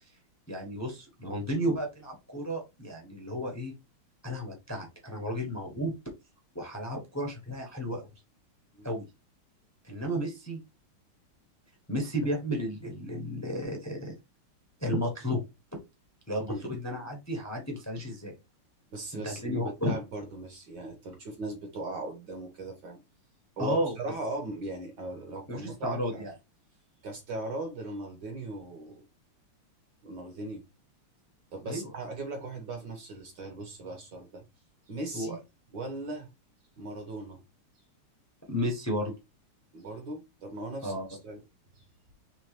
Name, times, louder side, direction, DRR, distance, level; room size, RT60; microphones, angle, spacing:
voice 1, 0.5-3.7 4.2-5.9 6.5-8.1 8.8-9.0 9.8-10.6 11.9-14.2 14.8-15.4 16.3-18.3 19.1-20.0 23.6-23.9 25.5-26.3 31.7-31.9 35.1-35.3 38.5-39.1 40.8-41.0, equal, 15° left, 0.7 m, -33 dB
voice 2, 18.9-23.0 23.6-26.3 27.0-29.1 30.0-30.6 31.5-34.4 34.9-35.4 35.7-36.3 36.8-37.4 39.7-41.4 41.7-41.8, right 2 dB, 60° right, 1.5 m, -38 dB
4.5 x 3.3 x 3.3 m
omnidirectional pair, 2.4 m